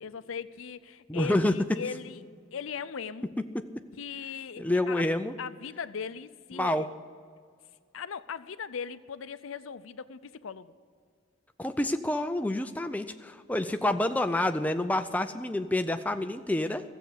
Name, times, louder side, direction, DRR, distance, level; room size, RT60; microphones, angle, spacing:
voice 1, 0.0-2.2 2.5-3.3 3.9-5.1 5.4-6.9 7.9-10.7, left 6 dB, 80° left, 14 dB, 0.5 m, -39 dB
voice 2, 1.1-1.8 3.5-3.7 4.6-5.3 6.5-6.9 11.6-16.8, left 1 dB, 5° left, 8 dB, 0.4 m, -28 dB
14.0 x 7.9 x 8.5 m, 2.1 s
head